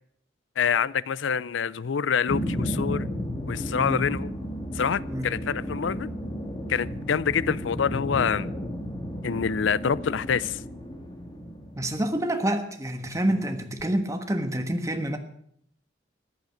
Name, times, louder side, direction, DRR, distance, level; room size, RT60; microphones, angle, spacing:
voice 1, 0.6-3.1 3.5-4.3 4.7-6.1 6.7-8.5 9.2-10.6, left 7 dB, 80° left, 0.5 m, -26 dB
sound 1, 2.3-12.1, equal, 20° left, 2.0 m, -33 dB
voice 2, 11.8-15.2, right 1 dB, 15° right, 1.3 m, -27 dB
14.5 x 9.2 x 7.8 m
head